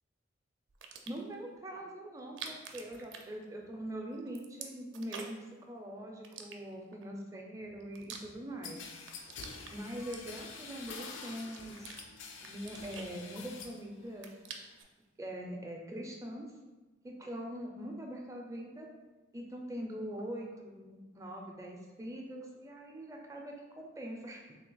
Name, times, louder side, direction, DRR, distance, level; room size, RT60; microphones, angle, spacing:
sound 1, 0.7-1.3 2.2-3.9 4.1-5.5 6.2-7.0 7.6-8.7 9.0-10.7 11.2-12.0 12.4-13.7 14.0-14.9, right 6 dB, 75° right, 0.4 m, -48 dB
voice 1, 1.1-8.8 9.7-11.9 12.4-14.3 15.2-16.5 17.0-18.9 19.3-24.6, right 1 dB, 15° right, 0 dB, 0.4 m, -43 dB
sound 2, 8.6-13.8 14.2-14.8, left 4 dB, 75° left, 0.4 m, -47 dB
3.3 x 2.7 x 3.8 m, 1.2 s
head